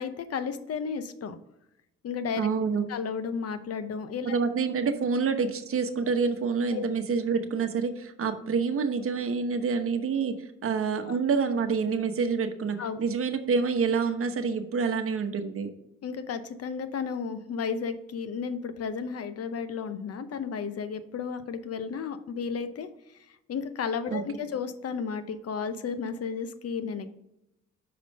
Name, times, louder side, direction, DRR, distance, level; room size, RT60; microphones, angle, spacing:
voice 1, 0.0-1.4 2.0-2.5 2.9-4.4 6.7-6.8 11.1-11.2 12.8-13.0 16.0-22.9 23.3-27.1, left 6 dB, 55° left, 11 dB, 0.8 m, -33 dB
voice 2, 2.4-2.8 4.3-10.4 10.6-15.7 24.1-24.2, right 5 dB, 45° right, 7 dB, 1.0 m, -27 dB
5.9 x 5.0 x 5.2 m, 0.84 s
cardioid pair, 90°, 30 cm